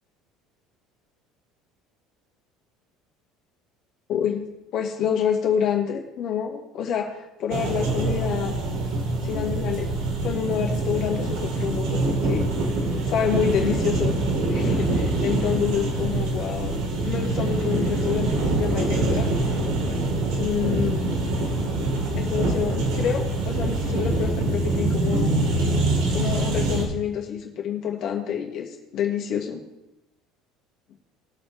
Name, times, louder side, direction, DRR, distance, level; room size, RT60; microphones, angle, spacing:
voice 1, 4.1-8.6 9.2-9.9 10.2-12.4 13.1-14.2 14.5-19.3 20.4-21.2 22.2-25.3 26.1-29.6, left 8 dB, 40° left, 1 dB, 2.1 m, -28 dB
sound 1, 7.5-26.9, right 2 dB, 70° right, 3.0 m, -24 dB
20.0 x 7.2 x 3.5 m, 0.92 s
cardioid pair, 180°, 0 cm